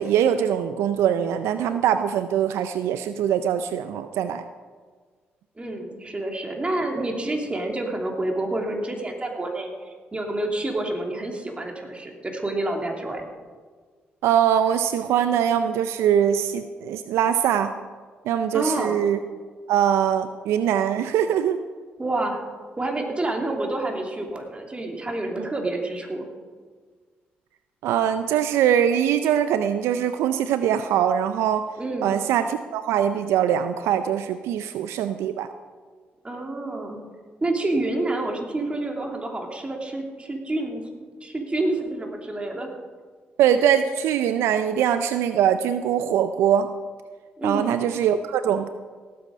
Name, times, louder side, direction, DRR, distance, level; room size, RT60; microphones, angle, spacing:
voice 1, 0.0-4.4 14.2-17.7 18.3-19.2 19.7-21.6 25.4-25.5 27.8-31.7 32.0-35.5 43.4-46.7 47.4-48.7, right 9 dB, 80° right, 10 dB, 0.4 m, -22 dB
voice 2, 5.6-13.2 18.5-19.0 22.0-22.4 22.8-26.3 31.8-32.2 36.2-37.0 37.4-40.8 41.2-42.7 47.4-47.8, right 2 dB, 25° right, 2 dB, 2.8 m, -28 dB
17.5 x 8.4 x 5.2 m, 1.5 s
supercardioid pair, 50°, 4 cm